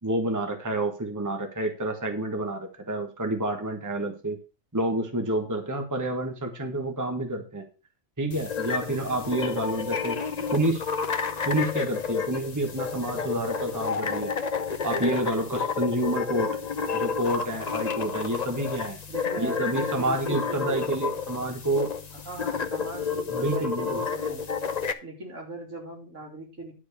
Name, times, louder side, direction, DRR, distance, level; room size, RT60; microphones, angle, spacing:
voice 1, 0.0-4.4 4.7-7.7 8.2-10.2 10.5-10.8 11.4-14.3 14.8-16.6 16.9-19.0 19.4-21.9 23.3-24.0, right 1 dB, 15° right, 5 dB, 1.4 m, -28 dB
sound 1, 8.3-24.9, left 5 dB, 40° left, 0.8 m, -31 dB
voice 2, 19.1-20.9 22.2-24.4 25.0-26.7, right 1 dB, 65° right, 1 dB, 3.3 m, -39 dB
11.5 x 4.6 x 6.6 m, 0.33 s
omnidirectional pair, 1.4 m